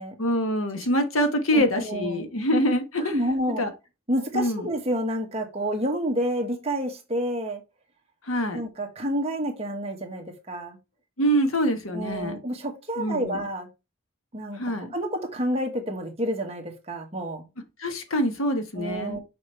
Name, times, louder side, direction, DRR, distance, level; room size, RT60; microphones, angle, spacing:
voice 1, 0.2-3.2 3.6-3.7 4.3-4.7 8.3-8.6 11.2-12.4 13.0-13.4 14.6-14.9 17.8-19.2, equal, 85° left, 1.3 m, -25 dB
voice 2, 1.5-2.2 3.1-3.6 4.1-7.6 8.5-10.8 11.9-13.7 14.3-17.5 18.8-19.2, equal, 30° right, 1.4 m, -29 dB
6.5 x 5.0 x 3.3 m
head